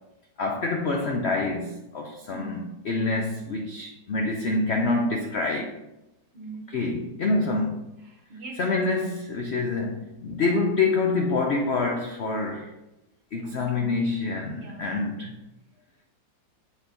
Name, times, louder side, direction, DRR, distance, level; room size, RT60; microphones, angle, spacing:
voice 1, 0.4-5.7 6.7-7.8 8.6-12.7 13.3-15.3, left 3 dB, 75° left, 1 dB, 0.5 m, -26 dB
voice 2, 2.3-2.7 6.3-6.8 8.0-8.8 13.4-14.1 14.5-15.0, right 4 dB, 40° right, 0 dB, 1.2 m, -42 dB
7.2 x 4.3 x 3.9 m, 0.94 s
omnidirectional pair, 2.0 m